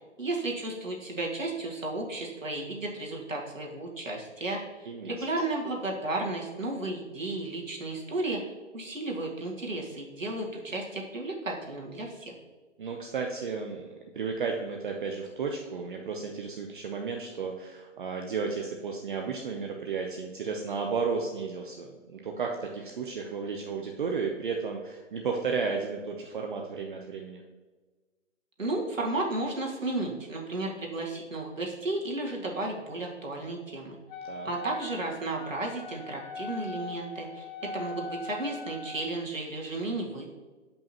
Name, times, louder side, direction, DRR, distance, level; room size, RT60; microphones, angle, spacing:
voice 1, 0.2-8.4 8.7-12.3 28.6-34.0 34.4-37.5 37.7-40.3, right 2 dB, 90° right, -1 dB, 2.0 m, -33 dB
voice 2, 12.8-13.9 14.1-27.4 34.2-34.5, right 5 dB, 40° right, 2 dB, 0.7 m, -33 dB
Wind instrument woodwind instrument, 34.1-39.1, left 2 dB, 35° left, 0.9 m, -40 dB
9.1 x 5.4 x 2.9 m, 1.3 s
figure-of-eight pair, 145°, 38 cm